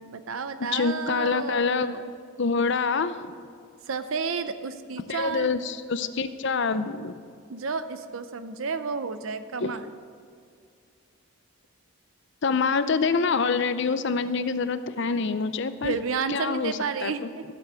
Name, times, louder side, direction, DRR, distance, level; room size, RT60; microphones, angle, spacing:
voice 1, 0.1-2.1 3.9-5.5 7.5-9.9 15.8-17.4, right 5 dB, 70° right, 11 dB, 0.6 m, -31 dB
voice 2, 0.7-2.0 2.4-3.3 5.1-7.2 9.6-9.7 12.4-15.9 16.3-16.7 17.0-17.1, left 4 dB, 55° left, 12 dB, 0.6 m, -26 dB
15.5 x 6.9 x 8.1 m, 2.2 s
head